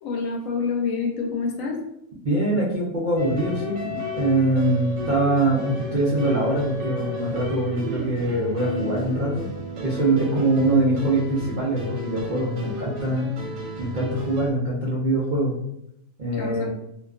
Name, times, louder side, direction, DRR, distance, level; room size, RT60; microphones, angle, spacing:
voice 1, 0.0-1.8 16.3-16.7, left 5 dB, 70° left, 0 dB, 0.9 m, -27 dB
voice 2, 2.2-9.5 9.8-13.3 13.8-15.5 16.2-16.7, right 2 dB, 90° right, -5 dB, 0.4 m, -23 dB
sound 1, 3.2-14.5, equal, 65° right, 0.8 m, -33 dB
2.5 x 2.3 x 2.3 m, 0.79 s
omnidirectional pair, 1.5 m